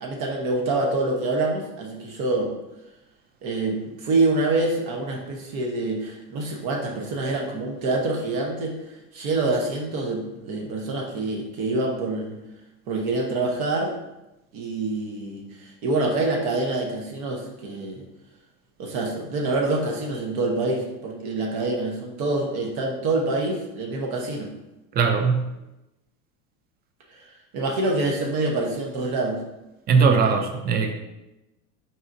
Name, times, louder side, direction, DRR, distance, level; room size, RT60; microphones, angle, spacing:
voice 1, 0.0-2.5 3.4-8.7 9.1-12.4 12.9-13.9 14.5-18.0 18.8-24.5 27.1-27.2 27.5-29.4, right 2 dB, 60° right, 1 dB, 1.0 m, -26 dB
voice 2, 25.0-25.4 29.9-30.9, right 5 dB, 25° right, 5 dB, 0.5 m, -19 dB
4.3 x 3.9 x 2.5 m, 0.95 s
supercardioid pair, 110°, 39 cm